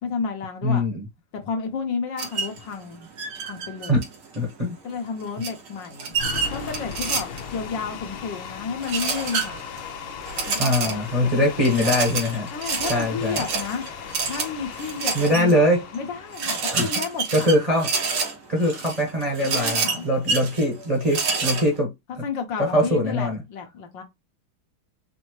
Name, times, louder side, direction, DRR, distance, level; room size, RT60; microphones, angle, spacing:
voice 1, 0.0-0.8 1.3-3.1 3.4-4.0 4.8-6.2 6.5-9.6 10.5-11.3 11.6-11.9 12.5-13.8 14.2-15.6 15.9-17.5 19.4-20.1 22.2-24.0, left 5 dB, 65° left, 1.5 m, -31 dB
voice 2, 0.6-1.0 3.9-4.0 4.3-4.7 10.6-12.5 12.9-13.4 15.1-15.8 16.7-17.0 17.3-17.9 18.5-21.9 22.6-23.4, left 1 dB, 25° right, 0.8 m, -22 dB
sound 1, 2.2-2.6 3.2-4.4 5.4-7.6 8.8-9.8 10.3-11.1 11.7-15.5 15.9-16.0 16.3-21.7, right 5 dB, 90° right, 2.2 m, -28 dB
sound 2, 6.1-18.3, left 6 dB, 85° left, 1.6 m, -38 dB
5.2 x 2.7 x 3.0 m
omnidirectional pair, 2.3 m